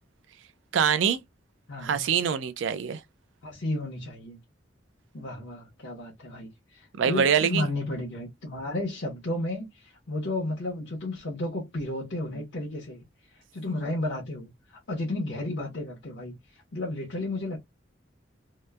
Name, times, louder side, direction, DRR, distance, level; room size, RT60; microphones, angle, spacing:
voice 1, 0.7-1.2 1.8-3.0 7.0-7.7, right 7 dB, 80° right, 0.4 m, -24 dB
voice 2, 1.7-2.1 3.4-4.4 5.1-13.0 13.3-17.6, left 1 dB, 70° left, 0.8 m, -33 dB
2.8 x 2.1 x 2.2 m
head